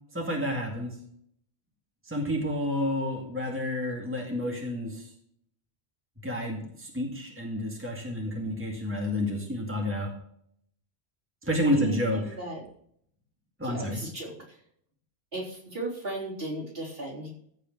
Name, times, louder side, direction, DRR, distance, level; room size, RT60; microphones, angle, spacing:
voice 1, 0.1-1.0 2.1-5.0 6.2-10.1 11.4-12.2 13.6-14.0, left 1 dB, 10° right, 0 dB, 2.2 m, -30 dB
voice 2, 11.7-12.6 13.6-14.6 15.3-17.3, right 2 dB, 60° right, -4 dB, 4.0 m, -36 dB
15.0 x 5.0 x 6.2 m, 0.67 s
omnidirectional pair, 1.1 m